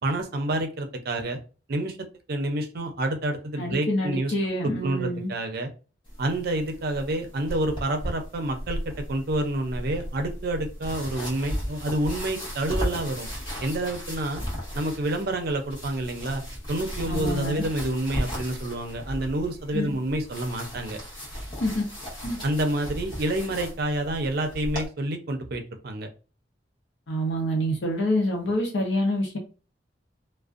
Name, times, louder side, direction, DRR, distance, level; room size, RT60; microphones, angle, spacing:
voice 1, 0.0-1.4 1.7-2.0 2.3-4.3 4.8-5.7 6.2-13.3 13.6-14.4 14.7-16.4 16.7-21.0 22.4-26.1, right 1 dB, 60° right, 5 dB, 0.5 m, -28 dB
voice 2, 3.6-5.3 17.1-17.6 19.7-19.9 21.6-21.8 22.2-22.4 27.1-29.4, equal, 75° left, 0 dB, 0.7 m, -27 dB
sound 1, 6.1-24.9, equal, 25° left, 0.9 m, -36 dB
2.5 x 2.1 x 2.4 m, 0.34 s
head